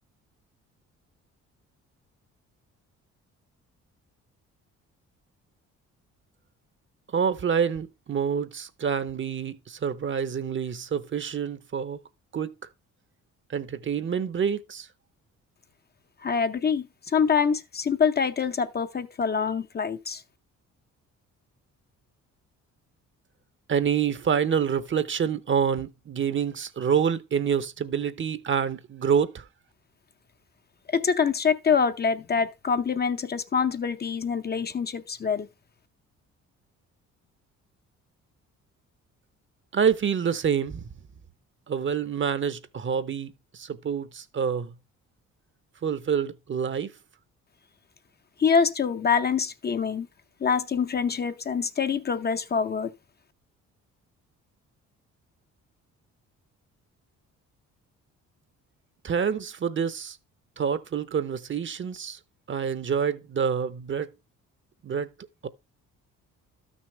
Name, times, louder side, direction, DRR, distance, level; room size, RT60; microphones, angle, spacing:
voice 1, 7.1-12.0 12.3-12.5 13.5-14.9 23.7-29.4 39.7-40.9 41.7-44.7 45.8-46.9 59.0-60.2 60.6-62.2 62.5-64.1 64.8-65.1 65.4-65.5, right 7 dB, 40° right, 0.8 m, -27 dB
voice 2, 16.2-16.9 17.1-20.2 30.9-35.5 48.4-50.1 50.4-52.9, left 6 dB, 35° left, 0.7 m, -25 dB
12.5 x 6.4 x 3.2 m
cardioid pair, 90°, 30 cm